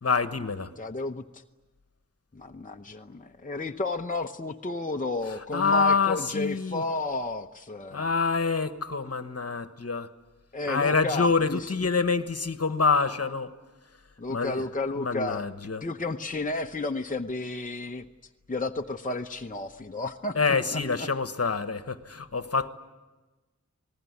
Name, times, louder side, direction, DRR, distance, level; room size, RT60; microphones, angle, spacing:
voice 1, 0.0-0.7 5.5-6.8 7.9-10.1 10.7-13.5 14.3-14.6 15.0-15.8 20.3-22.7, left 4 dB, 55° left, 1.3 m, -26 dB
voice 2, 0.8-1.4 2.3-8.1 10.5-11.9 14.2-15.4 15.8-18.1 18.5-20.4 20.7-21.1, left 2 dB, 25° left, 0.8 m, -32 dB
27.0 x 19.5 x 9.6 m
wide cardioid pair, 70°, 30 cm